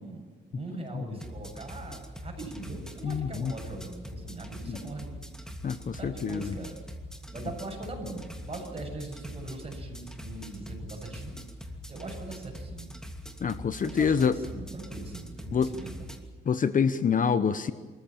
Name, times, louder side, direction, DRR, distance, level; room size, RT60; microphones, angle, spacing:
voice 1, 0.0-5.2 5.9-6.8 7.3-11.4 11.9-12.9 13.8-16.1, right 2 dB, 30° right, 2 dB, 7.3 m, -41 dB
sound 1, 1.2-16.2, equal, 5° left, 2.7 m, -43 dB
voice 2, 3.0-3.5 5.6-6.5 13.4-14.4 15.5-15.7 16.5-17.7, left 6 dB, 45° left, 12 dB, 1.0 m, -26 dB
25.5 x 15.0 x 8.8 m, 1.4 s
cardioid pair, 90°, 20 cm